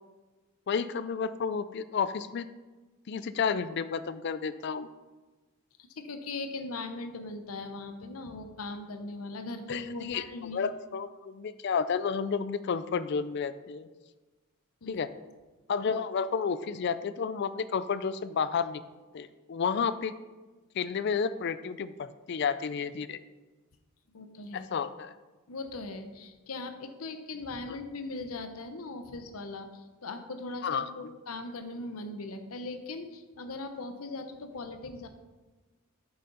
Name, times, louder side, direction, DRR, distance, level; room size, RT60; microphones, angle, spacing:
voice 1, 0.7-2.5 3.1-4.9 9.7-10.2 10.5-13.9 14.9-15.1 15.7-18.8 19.1-20.1 20.8-23.2 24.5-25.1 30.6-30.9, left 6 dB, 55° left, 14 dB, 0.4 m, -31 dB
voice 2, 6.0-10.7 14.8-15.0 24.1-24.7 25.5-35.1, left 2 dB, 85° left, 7 dB, 0.8 m, -39 dB
8.5 x 6.8 x 3.9 m, 1.2 s
head